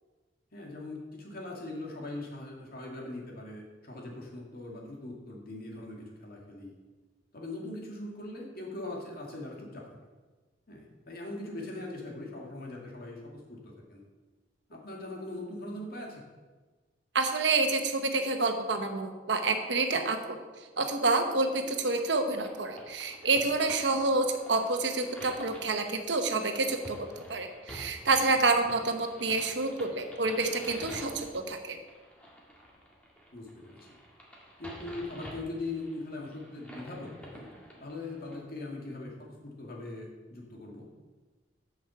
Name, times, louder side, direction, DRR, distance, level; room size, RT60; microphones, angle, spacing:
voice 1, 0.5-6.7 7.3-9.9 10.7-14.0 14.7-16.2 33.3-33.9 34.6-37.5 37.8-39.1 39.4-40.9, left 2 dB, 55° left, -1 dB, 2.4 m, -41 dB
voice 2, 17.1-20.4 20.8-31.8, right 3 dB, 75° right, 6 dB, 1.1 m, -28 dB
sound 1, 21.6-38.4, equal, 5° left, 2.0 m, -49 dB
8.4 x 6.3 x 7.0 m, 1.3 s
head